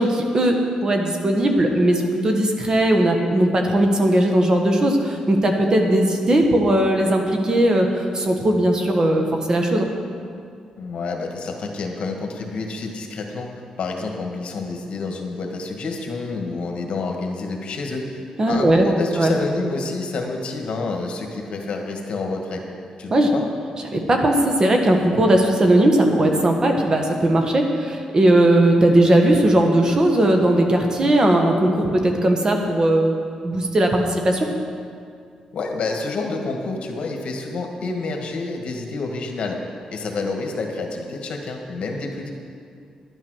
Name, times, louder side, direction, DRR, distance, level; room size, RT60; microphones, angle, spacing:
voice 1, 0.0-9.9 18.4-18.9 19.2-19.3 23.1-23.3 23.9-34.5, right 1 dB, 35° right, 3 dB, 1.5 m, -18 dB
voice 2, 10.8-13.5 13.8-22.6 23.0-23.5 35.5-39.6 39.9-42.3, left 3 dB, 65° left, 2 dB, 1.7 m, -28 dB
11.0 x 9.0 x 6.4 m, 2.3 s
cardioid pair, 90°, 2 cm